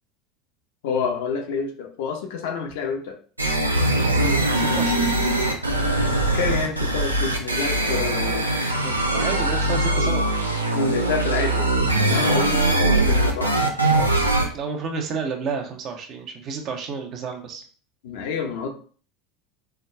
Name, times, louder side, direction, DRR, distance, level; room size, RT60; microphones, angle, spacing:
voice 1, 0.8-3.1 6.3-8.4 10.7-11.7 12.0-13.5 18.0-18.7, left 5 dB, 60° left, 3 dB, 0.6 m, -28 dB
sound 1, 3.4-14.5, right 2 dB, 90° right, 0.4 m, -21 dB
voice 2, 4.6-5.1 8.8-10.3 12.3-12.5 14.5-17.6, right 5 dB, 45° right, 3 dB, 0.7 m, -31 dB
4.6 x 2.3 x 2.2 m, 0.43 s
figure-of-eight pair, 75°, 0 cm